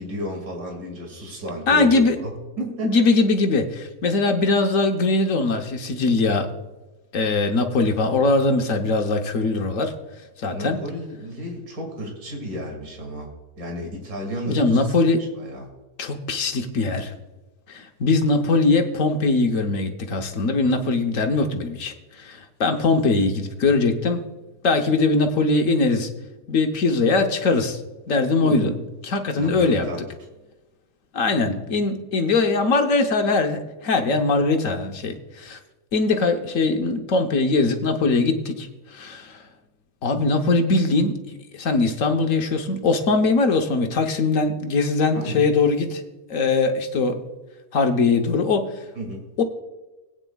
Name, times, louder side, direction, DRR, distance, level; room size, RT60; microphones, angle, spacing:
voice 1, 0.0-3.0 10.5-13.3 13.6-15.7 28.4-28.8 29.4-30.0 45.1-45.5 49.0-49.2, equal, 60° right, 1 dB, 2.7 m, -32 dB
voice 2, 1.7-2.2 2.8-6.5 7.1-9.9 10.4-10.8 14.5-15.3 16.0-17.1 17.7-24.2 24.6-26.1 26.5-27.8 28.1-28.7 29.0-29.8 31.1-35.6 35.9-39.4 40.0-41.2 41.5-46.0 46.3-47.2 47.7-48.7 49.4-49.5, left 3 dB, 55° left, 5 dB, 1.2 m, -21 dB
19.5 x 9.1 x 2.3 m, 1.1 s
omnidirectional pair, 1.7 m